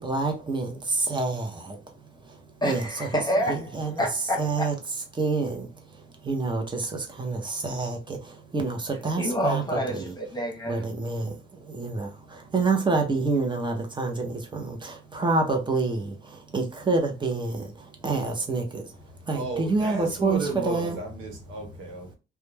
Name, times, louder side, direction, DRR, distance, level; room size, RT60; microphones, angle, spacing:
voice 1, 0.0-1.8 2.6-3.1 3.5-4.0 4.4-4.7 5.1-5.7 6.2-10.1 10.7-11.4 11.6-18.8 19.3-21.0, right 3 dB, 25° right, 0.8 m, -28 dB
voice 2, 2.6-4.7 9.2-10.8, equal, 20° left, 1.0 m, -28 dB
voice 3, 19.3-22.1, right 2 dB, 85° right, 1.1 m, -33 dB
2.4 x 2.2 x 3.2 m
cardioid pair, 90°, 20 cm